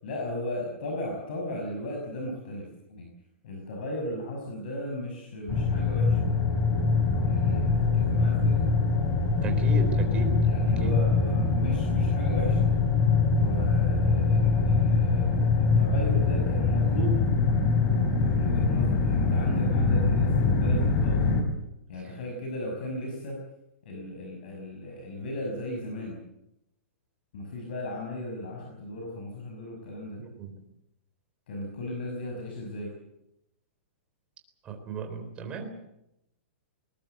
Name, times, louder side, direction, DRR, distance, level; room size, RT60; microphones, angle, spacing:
voice 1, 0.0-3.1 3.4-6.2 7.2-8.7 10.4-12.7 13.3-17.2 18.2-21.2 21.9-23.4 23.8-26.2 27.3-30.2 31.5-32.9, left 1 dB, 50° left, 1 dB, 6.0 m, -36 dB
sound 1, 5.5-21.4, left 4 dB, 20° left, 3.5 m, -23 dB
voice 2, 9.4-10.3 10.8-10.9 30.2-30.5 34.6-35.7, right 6 dB, 15° right, 4 dB, 3.7 m, -35 dB
21.0 x 20.5 x 7.8 m, 0.86 s
hypercardioid pair, 175°, 7 cm